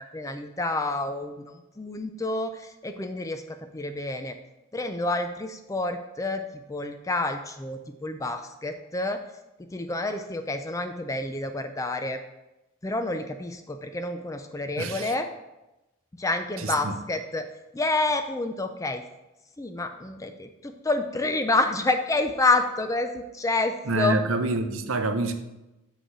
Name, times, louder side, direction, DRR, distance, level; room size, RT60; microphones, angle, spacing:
voice 1, 0.0-4.4 4.7-9.2 9.7-12.2 12.8-15.3 16.2-17.5 17.7-19.0 19.6-24.2, left 2 dB, 15° left, 8 dB, 0.3 m, -28 dB
voice 2, 14.8-15.1 16.6-16.9 23.9-25.3, right 2 dB, 65° right, 8 dB, 0.6 m, -27 dB
7.7 x 3.3 x 6.1 m, 0.98 s
head